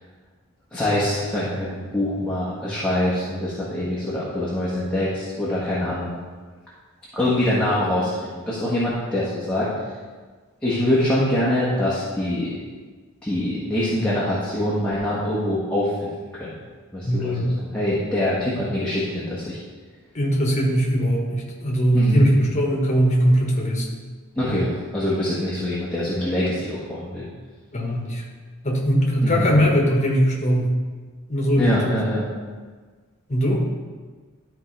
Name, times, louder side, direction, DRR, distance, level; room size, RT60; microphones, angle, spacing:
voice 1, 0.7-6.2 7.1-9.7 10.6-12.6 13.2-16.5 16.9-17.5 17.7-19.6 21.9-22.3 24.3-27.2 29.2-29.5 31.6-32.2, left 1 dB, 5° left, -9 dB, 1.5 m, -24 dB
voice 2, 17.0-17.5 20.1-24.0 27.7-28.2 28.6-30.7 31.3-32.0 33.3-33.6, equal, 35° left, -2 dB, 1.5 m, -20 dB
12.5 x 4.5 x 3.4 m, 1.5 s
head